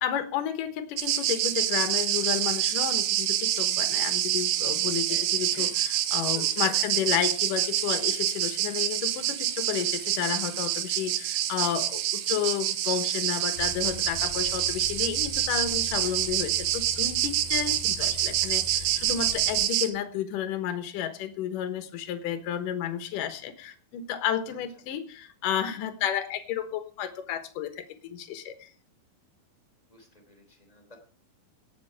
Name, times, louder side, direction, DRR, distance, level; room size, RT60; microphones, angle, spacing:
voice 1, 0.0-28.7, left 9 dB, 70° left, 10 dB, 2.6 m, -32 dB
sound 1, 1.0-19.9, right 12 dB, 80° right, 2.8 m, -27 dB
voice 2, 5.1-6.0 6.3-6.9 24.5-24.6 29.9-31.0, equal, 10° left, 2 dB, 2.5 m, -49 dB
Truck, 13.6-19.7, left 6 dB, 85° left, 2.7 m, -42 dB
17.5 x 7.3 x 4.8 m, 0.41 s
omnidirectional pair, 4.2 m